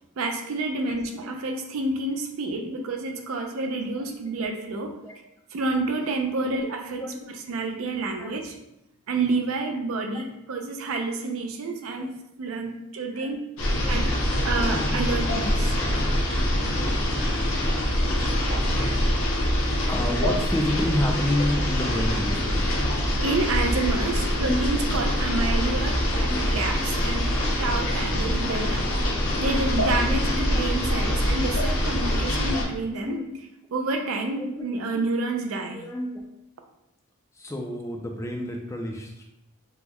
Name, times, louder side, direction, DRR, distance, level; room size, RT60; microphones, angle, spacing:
voice 1, 0.2-5.0 5.5-7.0 7.5-8.6 9.1-13.5 13.9-14.1 14.4-15.7 23.2-28.9 29.4-33.2 33.7-35.8, right 3 dB, 70° right, 4 dB, 0.4 m, -29 dB
voice 2, 6.9-7.3 8.2-8.3 10.1-10.3 12.0-12.1 13.1-13.3 13.7-14.0 14.6-14.8 15.3-15.4 15.8-15.9 19.9-22.7 24.4-24.7 25.3-25.4 26.1-26.6 28.3-28.6 29.0-29.2 30.1-30.9 31.3-31.4 32.5-33.3 34.4-35.0 35.3-35.4 35.7-36.2 37.4-39.2, left 1 dB, 15° left, 1 dB, 0.3 m, -30 dB
sound 1, 13.6-32.6, left 1 dB, 65° left, 0.7 m, -24 dB
3.5 x 2.1 x 3.0 m, 0.86 s
head